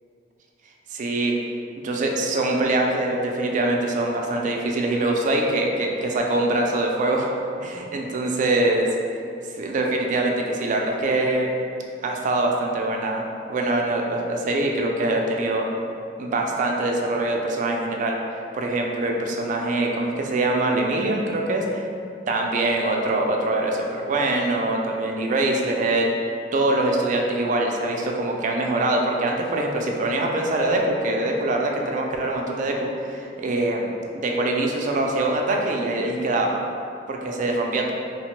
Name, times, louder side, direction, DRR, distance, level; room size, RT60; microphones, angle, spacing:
voice 1, 0.9-1.3 1.8-7.3 7.6-8.9 9.6-11.5 12.0-13.2 13.5-15.6 16.2-18.2 18.5-21.8 22.3-26.2 26.5-36.5 37.1-37.9, right 2 dB, 45° right, 1 dB, 0.3 m, -23 dB
3.0 x 2.1 x 2.9 m, 2.4 s
head